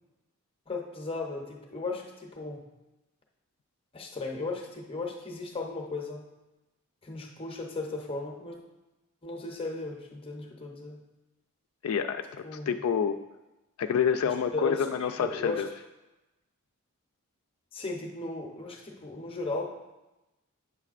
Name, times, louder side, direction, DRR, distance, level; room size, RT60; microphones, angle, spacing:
voice 1, 0.7-2.6 3.9-6.2 7.0-8.6 9.2-11.0 12.4-12.7 14.5-15.6 17.7-19.8, left 3 dB, 25° left, 0 dB, 0.7 m, -36 dB
voice 2, 11.8-13.2 13.8-15.7, left 7 dB, 75° left, 7 dB, 0.3 m, -28 dB
8.8 x 6.7 x 2.4 m, 1.0 s
head